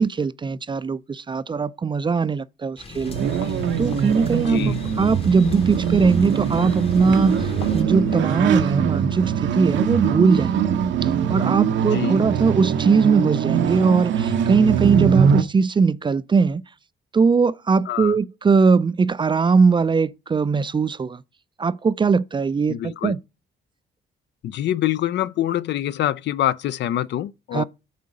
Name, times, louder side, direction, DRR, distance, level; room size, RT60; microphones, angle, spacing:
voice 1, 0.0-3.3 3.8-10.6 11.0-16.6 17.1-21.2 21.6-23.2 27.5-27.6, right 5 dB, 25° right, 0.4 m, -20 dB
sound 1, 2.8-7.8, left 4 dB, 30° left, 1.0 m, -37 dB
sound 2, 3.1-15.4, right 8 dB, 70° right, 0.7 m, -22 dB
sound 3, 3.4-8.6, left 7 dB, 80° left, 0.8 m, -38 dB
voice 2, 4.5-4.8 11.9-12.2 17.9-18.1 22.7-23.2 24.4-27.6, left 12 dB, 65° left, 0.4 m, -25 dB
8.4 x 3.8 x 5.2 m
cardioid pair, 90°, 20 cm